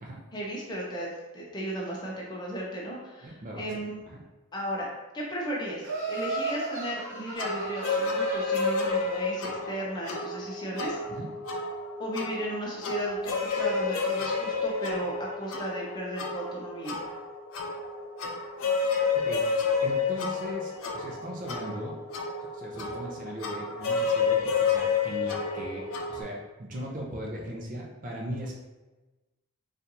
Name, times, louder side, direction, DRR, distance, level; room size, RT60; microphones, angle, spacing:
voice 1, 0.3-4.0 4.5-4.9 5.1-11.0 12.0-17.0, right 1 dB, 20° left, -3 dB, 0.6 m, -35 dB
voice 2, 3.2-3.6 4.1-4.2 11.1-11.3 19.1-19.5 19.8-22.0 22.4-28.5, equal, 35° right, -2 dB, 0.5 m, -38 dB
Laughter, 5.8-9.0, right 3 dB, 85° right, 1.0 m, -35 dB
sound 1, 7.4-26.2, left 4 dB, 70° left, 0.5 m, -30 dB
4.3 x 2.5 x 2.6 m, 1.1 s
head